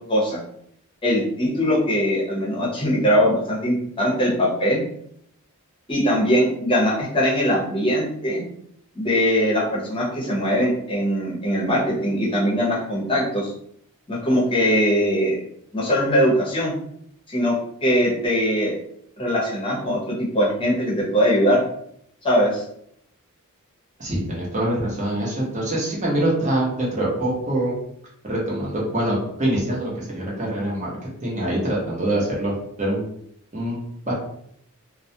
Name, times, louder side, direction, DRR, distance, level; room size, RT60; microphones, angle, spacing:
voice 1, 0.1-0.4 1.0-4.8 5.9-8.4 8.9-13.5 14.1-15.4 15.7-16.7 17.3-17.5 17.8-18.7 19.2-21.6 22.2-22.6, equal, 25° left, -5 dB, 0.8 m, -21 dB
voice 2, 24.0-27.7 28.2-33.1 33.5-34.1, right 1 dB, 30° right, -4 dB, 0.8 m, -24 dB
2.3 x 2.1 x 2.7 m, 0.70 s
head